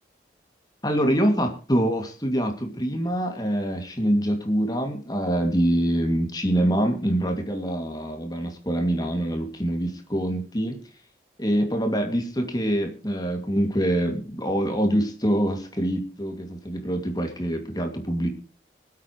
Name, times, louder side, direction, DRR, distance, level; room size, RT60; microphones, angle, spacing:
voice 1, 0.8-10.8 11.4-18.3, equal, 20° left, 5 dB, 2.4 m, -25 dB
25.0 x 8.4 x 3.1 m, 0.38 s
head